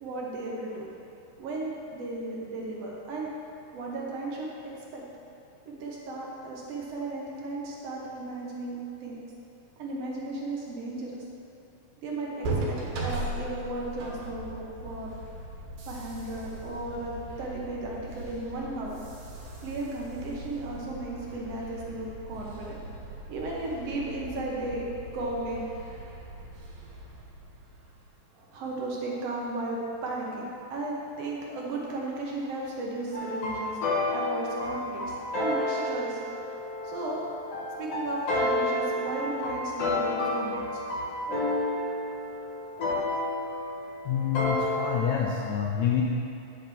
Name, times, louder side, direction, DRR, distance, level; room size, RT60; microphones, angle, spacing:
voice 1, 0.0-0.9 1.4-3.3 3.7-4.5 4.9-5.0 5.7-9.2 9.8-11.2 12.0-15.1 15.9-19.0 19.6-22.8 23.3-25.7 28.3-40.8, right 2 dB, 70° right, -3 dB, 1.5 m, -35 dB
sound 1, 12.4-28.1, right 1 dB, 85° right, 2.9 m, -39 dB
sound 2, 33.1-45.0, left 1 dB, 60° left, 1.9 m, -30 dB
voice 2, 44.1-46.0, left 9 dB, 85° left, -1 dB, 1.6 m, -27 dB
8.8 x 7.6 x 3.4 m, 2.8 s
omnidirectional pair, 3.8 m